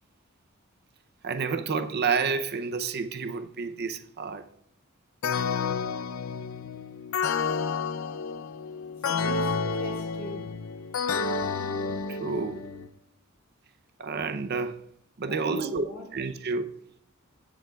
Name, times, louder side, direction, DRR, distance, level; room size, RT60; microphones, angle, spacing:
voice 1, 1.2-4.4 12.1-12.7 14.0-14.9 15.2-15.9 16.1-16.7, right 4 dB, 50° right, 0.6 m, -30 dB
sound 1, 5.2-12.9, left 5 dB, 80° left, 0.6 m, -30 dB
voice 2, 9.0-10.5 15.2-16.3, right 1 dB, 50° left, 3.7 m, -40 dB
21.0 x 7.1 x 2.3 m
head